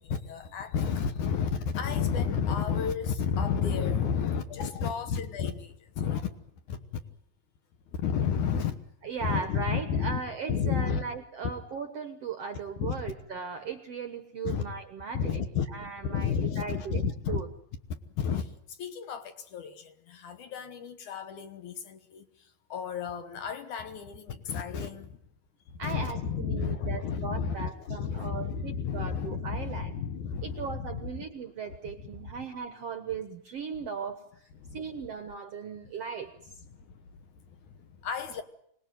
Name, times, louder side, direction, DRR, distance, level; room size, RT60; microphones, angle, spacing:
voice 1, 0.0-6.3 6.7-6.8 8.0-8.8 9.2-10.2 10.5-11.0 11.4-11.5 12.8-13.0 14.4-14.6 15.1-15.7 16.0-17.4 17.9-22.2 22.7-25.2 25.7-31.3 31.8-32.5 33.8-33.9 34.6-34.8 36.6-36.9 37.8-38.4, left 7 dB, 65° left, 2.4 m, -31 dB
voice 2, 9.0-15.4 15.7-17.5 25.8-30.0 30.4-34.5 34.7-36.3, right 5 dB, 60° right, 1.6 m, -37 dB
25.5 x 19.5 x 9.3 m
omnidirectional pair, 4.4 m